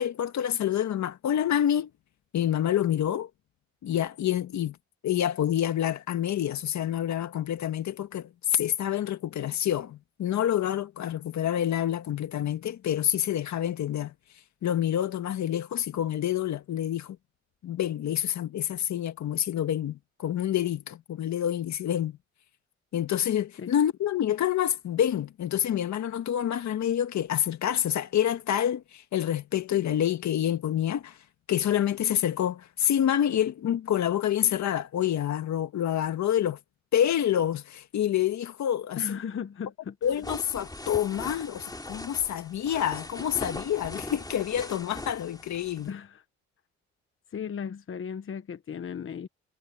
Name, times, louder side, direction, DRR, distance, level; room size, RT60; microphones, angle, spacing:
voice 1, 0.0-1.9 2.3-3.3 3.8-4.8 5.0-14.1 14.6-17.2 17.6-22.2 22.9-31.2 31.5-36.6 36.9-39.2 40.0-45.9, left 10 dB, 65° left, 1.8 m, -27 dB
voice 2, 39.0-40.0 45.8-46.2 47.3-49.3, left 7 dB, 45° left, 1.2 m, -36 dB
sound 1, 40.0-45.9, left 2 dB, 15° left, 2.9 m, -40 dB
cardioid pair, 90°, 30 cm